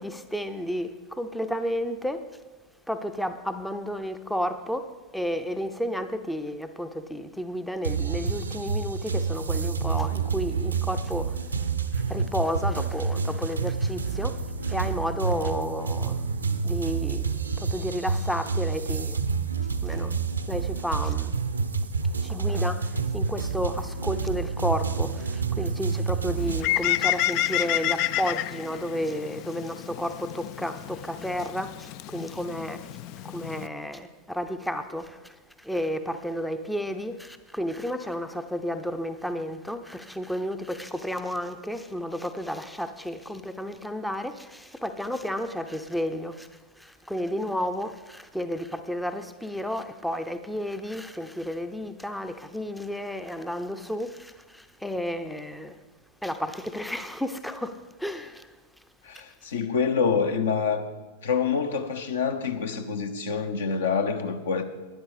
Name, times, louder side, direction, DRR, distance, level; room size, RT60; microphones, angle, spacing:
voice 1, 0.0-2.3 2.9-11.4 11.9-16.2 16.6-19.2 19.8-20.2 20.5-21.4 22.0-32.9 33.2-55.8 56.2-58.5, equal, 5° left, 0.6 m, -32 dB
sound 1, 7.8-26.6, right 5 dB, 80° right, 0.7 m, -28 dB
Bird, 26.4-33.7, left 14 dB, 45° left, 0.3 m, -30 dB
voice 2, 59.0-60.9 61.2-64.6, left 6 dB, 65° left, 1.0 m, -26 dB
12.0 x 10.0 x 5.1 m
figure-of-eight pair, 90°, 0 cm